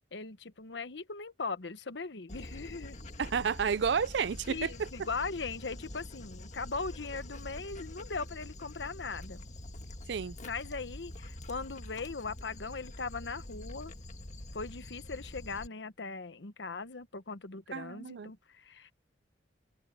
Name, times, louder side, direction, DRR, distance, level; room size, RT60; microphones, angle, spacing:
voice 1, 0.1-3.0 4.5-9.4 10.4-13.9 14.5-18.9, left 4 dB, 75° left, 1.1 m, -39 dB
Dog, 2.3-15.7, left 1 dB, 40° left, 1.7 m, -46 dB
voice 2, 3.2-4.9 10.1-10.4 17.7-18.3, right 6 dB, 70° right, 0.5 m, -31 dB
open air
head